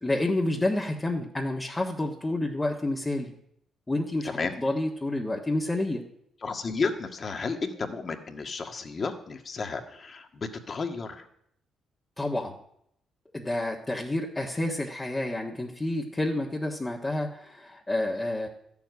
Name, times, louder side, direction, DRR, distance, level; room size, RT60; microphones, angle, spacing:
voice 1, 0.0-3.3 3.9-6.0 12.2-12.5 13.3-18.5, left 1 dB, 20° left, -2 dB, 1.5 m, -29 dB
voice 2, 4.3-4.6 6.4-11.2, left 4 dB, 40° left, 5 dB, 1.7 m, -32 dB
13.0 x 7.3 x 9.4 m, 0.72 s
cardioid pair, 90°, 0 cm